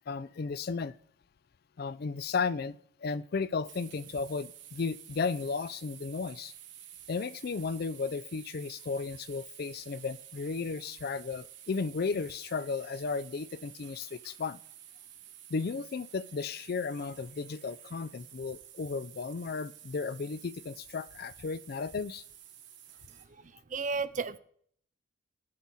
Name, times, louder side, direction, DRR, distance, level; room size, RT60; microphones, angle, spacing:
voice 1, 0.1-0.9 1.8-6.5 7.1-14.6 15.5-22.2, left 4 dB, 45° left, 0.4 m, -34 dB
sound 1, 3.7-23.3, right 11 dB, 55° right, 1.1 m, -51 dB
voice 2, 23.1-24.4, right 4 dB, 40° right, 0.5 m, -35 dB
11.5 x 4.2 x 6.0 m
head